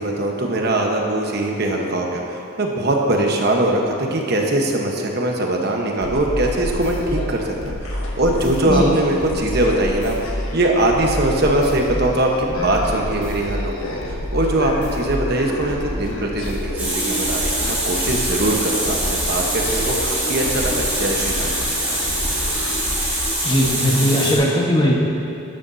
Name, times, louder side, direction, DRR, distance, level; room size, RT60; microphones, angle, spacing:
voice 1, 0.0-10.2 10.5-19.9 20.3-21.6, right 1 dB, 50° right, 1 dB, 1.1 m, -21 dB
sound 1, 6.0-23.7, left 1 dB, 85° left, 1.3 m, -28 dB
Water tap faucet, 16.8-24.3, right 1 dB, 10° right, 1.9 m, -24 dB
voice 2, 23.4-24.9, equal, 25° left, -2 dB, 1.3 m, -18 dB
12.0 x 12.0 x 2.8 m, 2.6 s
head